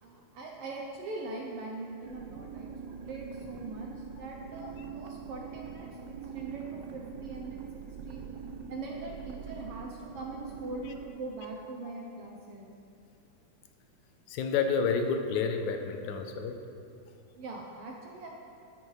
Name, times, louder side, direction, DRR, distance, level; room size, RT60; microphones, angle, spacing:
voice 1, 0.0-7.7 8.0-8.2 8.7-12.7 17.4-18.3, right 2 dB, 70° right, 0 dB, 1.4 m, -42 dB
sound 1, 2.0-11.1, right 6 dB, 90° right, 2.1 m, -43 dB
voice 2, 14.3-16.6, left 5 dB, 85° left, 6 dB, 2.0 m, -29 dB
12.5 x 9.8 x 3.2 m, 2.6 s
omnidirectional pair, 3.4 m